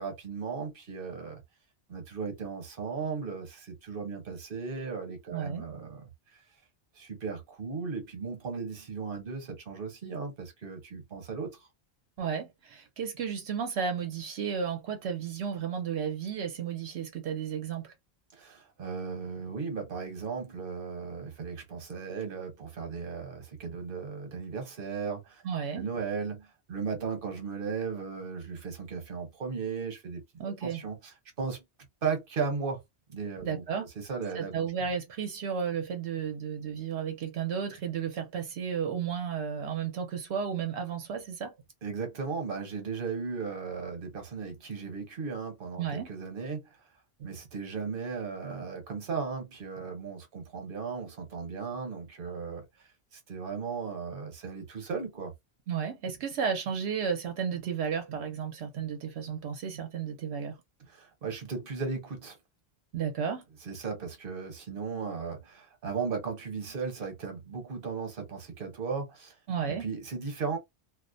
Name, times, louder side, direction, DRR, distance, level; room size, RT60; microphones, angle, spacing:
voice 1, 0.0-1.4 1.9-6.0 6.9-11.7 18.3-25.4 25.7-31.6 32.0-32.8 33.1-33.6 33.9-34.7 41.8-46.7 47.2-52.6 53.1-55.3 60.9-62.4 63.6-69.4 69.7-70.6, right 5 dB, 60° right, 1.1 m, -36 dB
voice 2, 5.3-5.7 12.2-17.9 25.4-25.8 30.4-30.8 33.4-33.9 34.4-41.5 45.8-46.1 47.2-47.3 55.7-60.6 62.9-63.4 69.5-69.9, right 7 dB, 80° right, 0.9 m, -33 dB
2.4 x 2.0 x 2.5 m
omnidirectional pair, 1.1 m